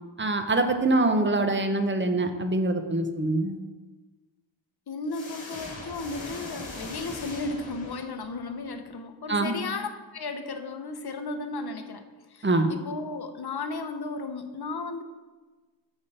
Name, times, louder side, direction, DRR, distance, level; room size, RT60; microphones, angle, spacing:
voice 1, 0.2-3.6 9.3-9.6 12.4-12.7, right 2 dB, 25° right, 7 dB, 0.6 m, -24 dB
voice 2, 4.9-12.0 12.3-15.0, left 3 dB, 55° left, 6 dB, 0.7 m, -34 dB
sound 1, 5.1-8.5, left 2 dB, 75° left, 1.6 m, -40 dB
7.0 x 5.4 x 4.0 m, 1.3 s
wide cardioid pair, 60°, 46 cm